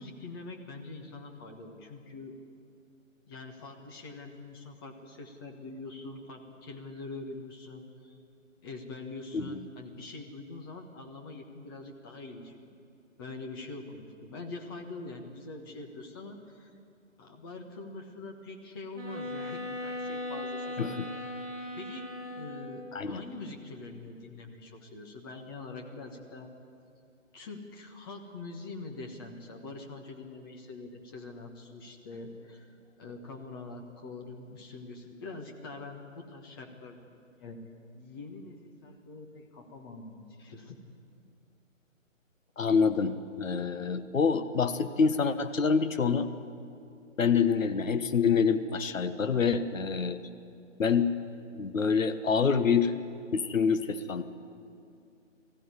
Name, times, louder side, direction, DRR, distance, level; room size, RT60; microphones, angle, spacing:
voice 1, 0.0-2.4 3.3-8.2 8.6-12.7 13.2-16.7 17.2-21.3 21.7-26.5 27.3-37.6 37.9-40.8, left 3 dB, 15° left, 2 dB, 1.4 m, -44 dB
sound 1, 18.9-22.8, left 1 dB, 20° right, 7.3 m, -38 dB
voice 2, 22.9-23.2 42.6-46.3 47.2-50.2 50.8-51.1 51.5-52.9 53.3-54.2, left 5 dB, 75° left, 10 dB, 1.4 m, -26 dB
20.5 x 15.5 x 9.8 m, 2.6 s
hypercardioid pair, 160°, 40 cm